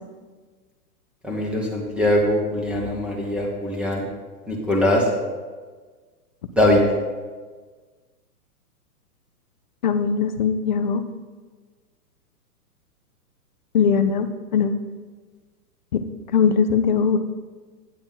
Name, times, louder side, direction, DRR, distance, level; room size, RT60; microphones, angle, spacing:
voice 1, 1.2-4.0 4.5-5.0 6.5-6.8, left 1 dB, ahead, -2 dB, 1.2 m, -21 dB
voice 2, 9.8-11.0 13.7-14.7 15.9-16.0 16.3-17.2, left 6 dB, 35° left, 9 dB, 0.4 m, -20 dB
9.1 x 8.7 x 3.9 m, 1.4 s
hypercardioid pair, 145°, 47 cm